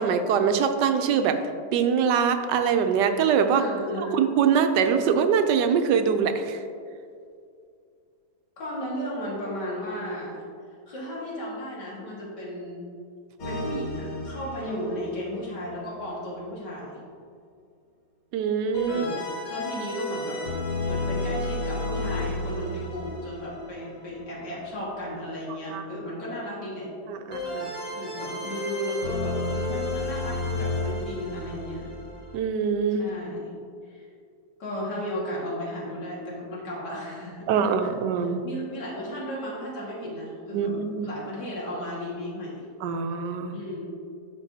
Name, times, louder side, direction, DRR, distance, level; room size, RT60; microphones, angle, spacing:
voice 1, 0.0-1.4 1.7-3.6 4.0-6.6 18.3-19.1 25.7-26.0 27.1-27.8 32.3-33.0 37.5-38.4 40.5-41.1 42.8-43.6, right 7 dB, 85° right, 8 dB, 1.2 m, -23 dB
voice 2, 3.6-4.2 8.6-10.4 10.9-12.8 13.4-17.0 18.8-19.2 19.5-20.4 20.8-26.9 27.9-31.9 33.0-33.5 33.9-34.1 34.6-37.9 38.2-42.7 43.5-43.9, equal, 85° left, -6 dB, 2.5 m, -34 dB
sound 1, 13.4-16.1 18.7-24.4 27.3-32.4, left 2 dB, 60° left, 1.6 m, -32 dB
12.5 x 4.5 x 2.7 m, 2.3 s
omnidirectional pair, 1.8 m